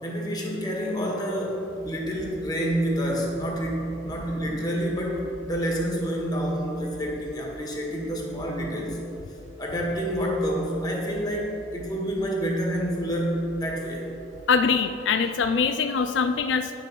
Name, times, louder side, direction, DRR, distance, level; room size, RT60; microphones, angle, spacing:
voice 1, 0.0-9.0 9.6-14.1, equal, 20° left, -1 dB, 1.7 m, -28 dB
voice 2, 14.5-16.7, left 5 dB, 80° left, 9 dB, 0.4 m, -23 dB
9.9 x 6.8 x 6.0 m, 2.8 s
head